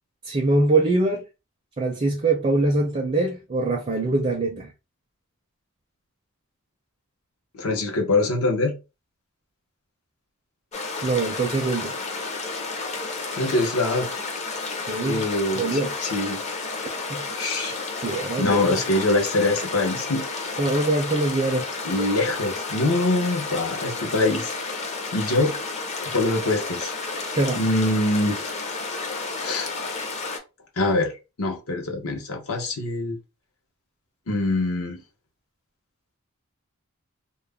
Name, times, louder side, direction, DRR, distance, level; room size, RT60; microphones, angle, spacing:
voice 1, 0.2-1.2 1.8-4.7 11.0-11.9 14.9-15.2 15.6-16.0 17.1-17.2 18.0-18.8 20.6-21.7 27.2-27.7, right 2 dB, 30° right, 0.4 m, -23 dB
voice 2, 7.5-8.8 13.4-14.1 15.1-16.4 17.4-17.7 18.4-20.5 21.8-24.5 25.1-25.6 26.1-26.9 27.6-28.5 29.4-29.7 30.8-31.1 31.4-33.2 34.3-35.0, left 2 dB, 75° left, 0.8 m, -24 dB
sound 1, 10.7-30.4, left 3 dB, 30° left, 0.5 m, -31 dB
2.3 x 2.0 x 3.3 m
head